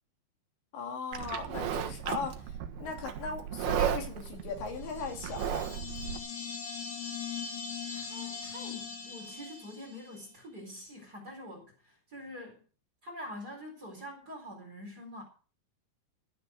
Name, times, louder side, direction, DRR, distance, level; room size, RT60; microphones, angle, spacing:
voice 1, 0.7-2.4 2.8-5.7, left 5 dB, 65° left, 4.7 m, -38 dB
Livestock farm animals working animals, 1.1-6.2, right 9 dB, 65° right, 2.8 m, -35 dB
sound 1, 4.8-10.2, left 6 dB, 50° left, 3.9 m, -40 dB
voice 2, 7.9-12.6 13.0-15.2, left 1 dB, 20° right, 4.0 m, -45 dB
15.5 x 9.0 x 6.5 m
omnidirectional pair, 5.6 m